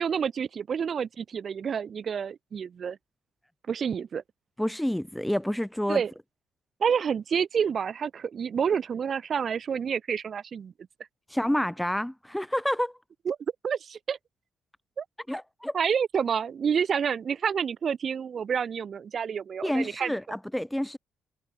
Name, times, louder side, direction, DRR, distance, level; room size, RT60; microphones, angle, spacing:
voice 1, 0.0-3.0 3.7-4.2 5.9-6.1 6.8-10.7 13.3-13.4 13.6-14.2 15.0-15.1 15.7-20.1, right 7 dB, 40° right, 5.9 m, -28 dB
voice 2, 4.6-6.0 11.3-12.9 15.3-15.8 19.6-21.0, equal, 5° left, 2.1 m, -28 dB
cardioid pair, 135°, 0 cm